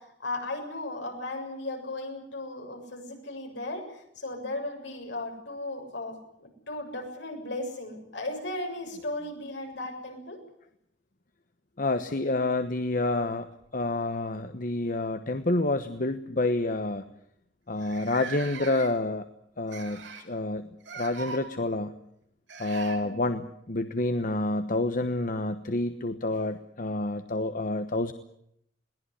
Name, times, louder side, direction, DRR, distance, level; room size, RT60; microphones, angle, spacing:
voice 1, 0.2-3.8 4.2-10.4 22.9-23.2, left 2 dB, 70° left, 3 dB, 7.1 m, -36 dB
voice 2, 11.8-13.5 13.7-17.0 17.7-19.3 19.6-22.0 22.6-28.1, left 2 dB, 45° left, 9 dB, 1.1 m, -28 dB
sound 1, 13.6-14.3 15.4-15.5 15.9-16.1 16.8-16.9 17.1-17.2 17.8-19.1 19.7-20.3 20.8-21.4 22.5-23.0 25.1-25.2 26.3-26.4, right 5 dB, 80° right, 5.2 m, -41 dB
22.0 x 19.0 x 9.9 m, 0.74 s
head